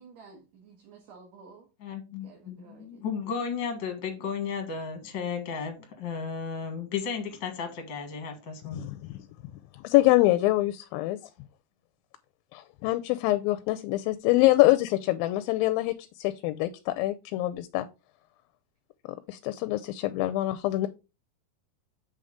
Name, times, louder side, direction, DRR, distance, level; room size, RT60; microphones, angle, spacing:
voice 1, 0.0-1.7 2.2-3.0, right 4 dB, 55° right, -1 dB, 2.6 m, -52 dB
voice 2, 1.8-8.9, left 6 dB, 50° left, 5 dB, 1.4 m, -34 dB
voice 3, 8.7-9.1 9.8-11.2 12.5-15.9 16.2-17.9 19.3-20.9, left 17 dB, 85° left, 10 dB, 2.4 m, -25 dB
7.9 x 3.7 x 5.0 m, 0.29 s
omnidirectional pair, 4.1 m